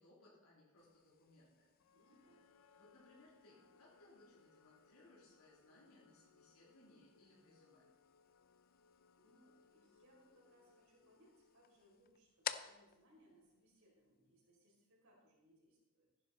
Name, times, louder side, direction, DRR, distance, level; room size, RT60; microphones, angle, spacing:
voice 1, 0.0-1.7 2.7-7.8, left 1 dB, 75° left, -5 dB, 3.5 m, -66 dB
sound 1, 0.8-14.4, left 9 dB, 45° left, 0.5 m, -55 dB
sound 2, 1.8-12.0, left 5 dB, 90° left, 0.6 m, -70 dB
voice 2, 1.9-2.5 9.2-16.1, equal, 70° right, -3 dB, 5.1 m, -70 dB
14.5 x 10.5 x 4.2 m, 1.0 s
head